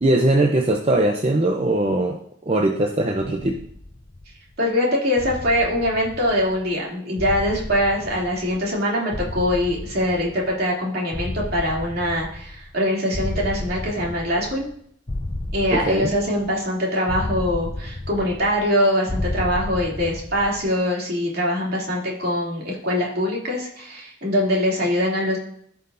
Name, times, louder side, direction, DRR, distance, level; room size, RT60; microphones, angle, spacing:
voice 1, 0.0-3.6 15.7-16.1, right 1 dB, 30° right, 3 dB, 0.6 m, -21 dB
sound 1, 3.3-4.5 5.2-6.7 7.2-8.8 9.1-10.7 11.1-12.8 13.1-14.7 15.1-16.7 17.1-18.7 19.1-20.7, left 1 dB, 25° left, 0.6 m, -32 dB
voice 2, 4.6-14.7 15.5-25.4, equal, 50° right, -3 dB, 2.9 m, -23 dB
15.5 x 5.5 x 2.7 m, 0.66 s
head